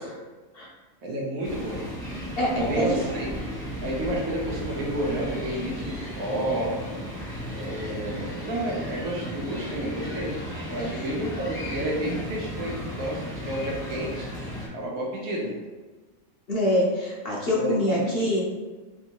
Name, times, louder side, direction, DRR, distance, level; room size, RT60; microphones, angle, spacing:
voice 1, 1.0-1.8 2.6-3.4 3.8-6.8 7.5-10.3 10.7-14.3 14.7-15.6 17.6-18.0, right 1 dB, 85° right, -3 dB, 1.3 m, -30 dB
sound 1, 1.4-14.7, equal, 5° left, 0.7 m, -35 dB
voice 2, 2.4-2.9 10.8-11.0 16.5-18.4, equal, 50° left, -5 dB, 0.8 m, -25 dB
3.5 x 2.6 x 2.8 m, 1.3 s
omnidirectional pair, 1.5 m